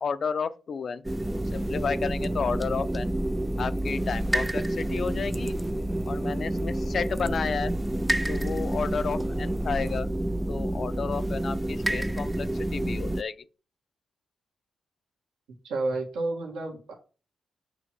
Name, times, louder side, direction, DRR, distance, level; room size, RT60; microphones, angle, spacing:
voice 1, 0.0-1.0 1.5-3.1 3.6-5.5 6.1-7.7 8.3-10.1 10.5-13.4, left 6 dB, 60° left, 0.5 m, -32 dB
sound 1, 1.0-13.2, right 1 dB, 10° right, 0.3 m, -29 dB
voice 2, 15.6-16.9, right 2 dB, 85° right, 1.7 m, -30 dB
6.7 x 3.2 x 5.9 m
supercardioid pair, 55°, 0 cm